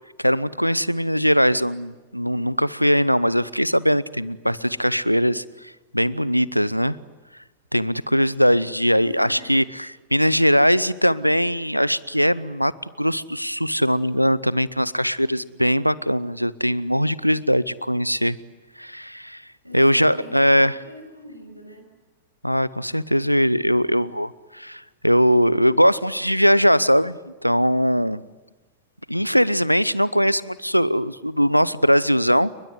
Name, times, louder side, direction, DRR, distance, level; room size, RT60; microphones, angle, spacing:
voice 1, 0.2-7.0 7.7-12.7 13.0-18.4 18.8-19.4 19.7-20.8 22.4-28.2 29.1-32.5, equal, 90° left, 0.8 m, -20 dB
voice 2, 9.0-9.6 19.6-21.9, equal, 90° right, 6.9 m, -43 dB
30.0 x 22.5 x 7.9 m
figure-of-eight pair, 90°, 0 cm